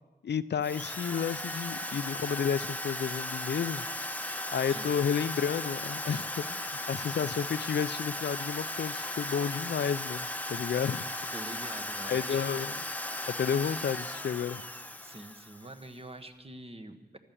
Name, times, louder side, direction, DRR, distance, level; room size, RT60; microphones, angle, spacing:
voice 1, 0.2-3.8 4.5-11.1 12.1-12.8 13.4-14.6, left 7 dB, 90° left, 16 dB, 0.4 m, -31 dB
Drill, 0.6-15.8, left 1 dB, 10° left, 0.9 m, -36 dB
voice 2, 11.3-12.4 15.0-17.2, right 1 dB, 35° right, 7 dB, 1.3 m, -45 dB
15.0 x 12.0 x 7.1 m, 1.2 s
wide cardioid pair, 75°, 17 cm